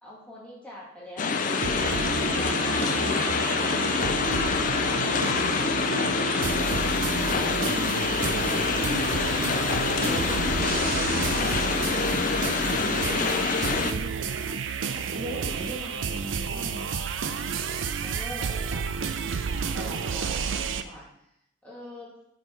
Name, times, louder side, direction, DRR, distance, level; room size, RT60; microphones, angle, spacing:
voice 1, 0.0-3.1 6.5-7.5 18.0-19.1 19.7-21.1 21.6-22.1, left 1 dB, 5° left, -6 dB, 2.0 m, -45 dB
sound 1, 1.2-13.9, left 5 dB, 45° left, 0.5 m, -26 dB
sound 2, 1.6-20.8, right 5 dB, 80° right, 0.5 m, -31 dB
voice 2, 8.1-9.5 9.7-10.8 11.1-12.2 12.5-14.6 14.9-17.0, equal, 25° right, -6 dB, 1.7 m, -39 dB
6.8 x 5.2 x 4.4 m, 0.76 s
head